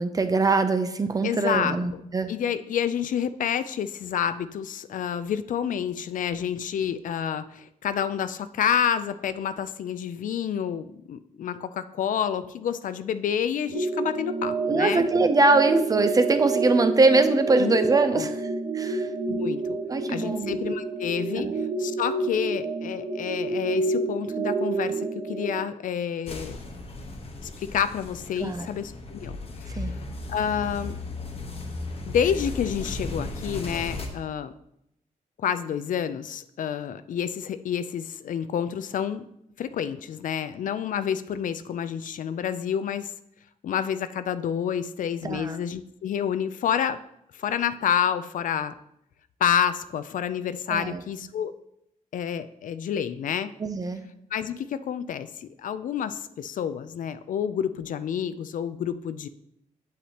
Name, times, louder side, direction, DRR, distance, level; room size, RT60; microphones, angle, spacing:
voice 1, 0.0-2.3 14.7-18.4 18.7-19.1 19.9-20.6 21.4-21.5 28.4-28.7 29.8-30.0 45.2-45.6 50.7-51.0 53.6-54.0, right 3 dB, 25° right, 9 dB, 0.5 m, -23 dB
voice 2, 1.2-1.8 2.3-15.1 17.6-17.8 18.1-18.3 19.3-19.8 20.1-26.6 27.4-30.0 30.3-31.0 32.1-34.5 35.4-39.3 39.6-43.1 43.6-47.0 47.3-48.7 49.4-51.5 52.1-53.5 54.3-59.3, left 8 dB, 65° left, 13 dB, 0.4 m, -29 dB
sound 1, 13.7-25.6, right 3 dB, 80° right, 1.1 m, -28 dB
sound 2, 26.3-34.1, left 2 dB, 40° left, 1.1 m, -36 dB
8.2 x 7.9 x 2.9 m, 0.77 s
wide cardioid pair, 145°, 15 cm